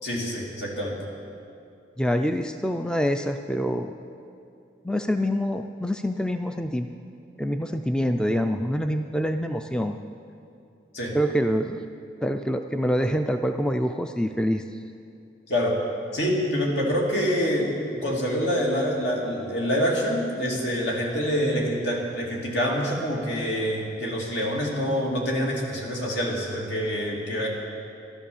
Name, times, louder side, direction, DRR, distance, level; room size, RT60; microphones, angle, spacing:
voice 1, 0.0-1.0 10.9-11.2 15.5-15.8 16.1-17.7 18.0-27.5, equal, 75° left, -2 dB, 2.6 m, -26 dB
voice 2, 2.0-3.9 4.8-6.9 7.4-10.0 11.1-11.8 12.2-14.6, equal, 5° left, 7 dB, 0.3 m, -26 dB
12.5 x 12.0 x 7.0 m, 2.5 s
head